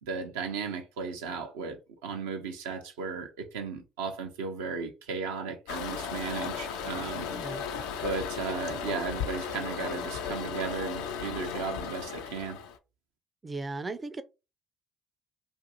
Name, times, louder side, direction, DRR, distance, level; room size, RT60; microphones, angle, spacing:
voice 1, 0.0-7.3 8.0-12.6, right 5 dB, 85° right, 0.5 m, -35 dB
Toilet flush, 5.7-12.8, left 7 dB, 80° left, 0.3 m, -35 dB
voice 2, 7.3-7.6 13.4-14.2, right 3 dB, 30° right, 0.4 m, -36 dB
2.5 x 2.5 x 2.8 m
hypercardioid pair, 55°, 0 cm